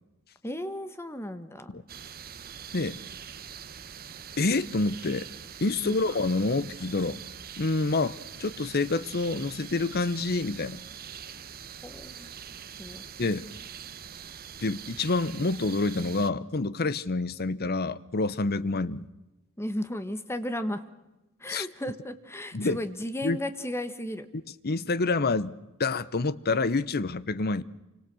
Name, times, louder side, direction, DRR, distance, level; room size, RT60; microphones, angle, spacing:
voice 1, 0.4-1.7 5.8-6.0 11.8-12.3 12.8-13.0 19.6-20.8 21.4-24.3, left 1 dB, 10° left, 1.5 m, -34 dB
sound 1, 1.9-16.3, right 8 dB, 45° right, 1.0 m, -44 dB
voice 2, 4.4-5.3 5.6-7.2 7.6-10.8 13.2-13.5 14.6-19.1 21.5-21.7 22.5-22.8 23.2-23.4 24.6-25.5 25.8-27.6, left 3 dB, 45° left, 0.9 m, -27 dB
27.5 x 26.0 x 6.3 m
head